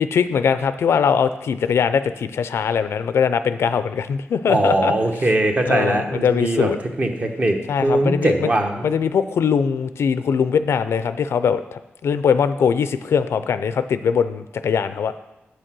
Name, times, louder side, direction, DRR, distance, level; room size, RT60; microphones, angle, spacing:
voice 1, 0.0-4.9 5.6-6.8 7.7-8.5 8.8-15.1, left 7 dB, 80° left, 12 dB, 0.5 m, -21 dB
voice 2, 4.5-6.7 7.0-8.9, right 1 dB, 30° right, 4 dB, 1.1 m, -21 dB
8.5 x 6.4 x 6.1 m, 0.92 s
wide cardioid pair, 150°, 4 cm